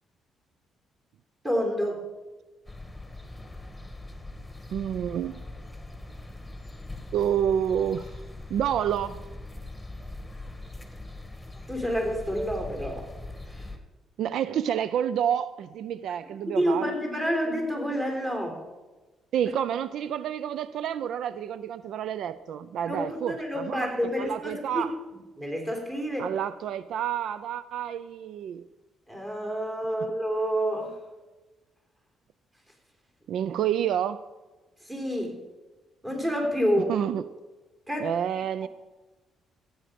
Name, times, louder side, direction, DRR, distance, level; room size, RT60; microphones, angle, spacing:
voice 1, 1.4-2.0 11.7-13.1 13.5-13.7 16.3-18.6 22.9-24.9 25.4-26.3 29.1-31.0 34.8-35.4 36.0-37.0 37.9-38.1, equal, 20° right, 3.6 m, -28 dB
sound 1, 2.6-13.8, left 2 dB, 5° left, 1.7 m, -41 dB
voice 2, 4.7-5.4 7.1-8.1 8.5-9.2 14.2-16.9 19.3-23.9 24.2-24.9 26.2-28.6 33.3-34.2 36.9-37.2 38.0-38.7, right 9 dB, 75° right, 0.3 m, -29 dB
15.0 x 8.8 x 5.1 m
cardioid pair, 90°, 0 cm